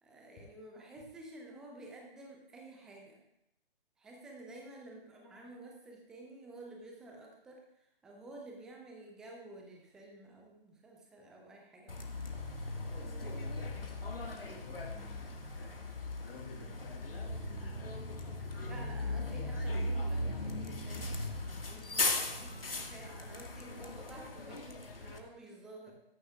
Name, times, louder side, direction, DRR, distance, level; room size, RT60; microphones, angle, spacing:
voice 1, 0.0-3.2 4.0-12.1 18.6-21.2 21.6-25.9, right 2 dB, ahead, 0 dB, 0.5 m, -51 dB
Bus, 11.9-25.2, left 2 dB, 75° left, 1.7 m, -38 dB
voice 2, 13.0-14.0 14.4-15.9 16.2-18.0 18.5-19.2, left 3 dB, 20° left, 2 dB, 1.4 m, -52 dB
17.0 x 13.5 x 2.3 m, 0.81 s
figure-of-eight pair, 135°, 29 cm